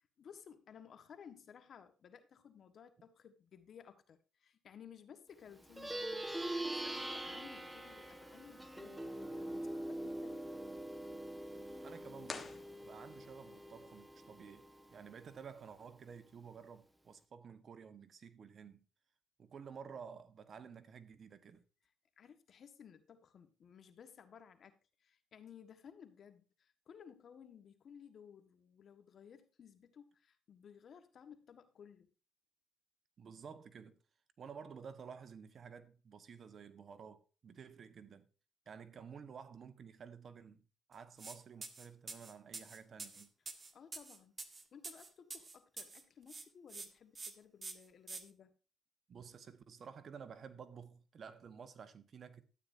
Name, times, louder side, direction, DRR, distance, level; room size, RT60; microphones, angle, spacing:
voice 1, 0.0-10.5 22.2-32.1 43.7-44.4 44.7-48.6, left 7 dB, 60° left, 1.5 m, -58 dB
Plucked string instrument, 5.6-15.3, right 1 dB, 10° right, 1.3 m, -44 dB
voice 2, 11.8-18.8 19.4-21.6 33.2-34.0 34.4-38.3 38.7-40.6 40.9-43.3 49.1-52.4, right 6 dB, 50° right, 1.2 m, -52 dB
sound 1, 12.2-13.4, left 4 dB, 35° left, 1.3 m, -48 dB
sound 2, 41.2-41.4 41.6-46.0 46.3-46.9 47.1-47.3 47.6-48.2, right 4 dB, 30° right, 1.6 m, -47 dB
12.5 x 9.1 x 2.7 m
cardioid pair, 90°, 0 cm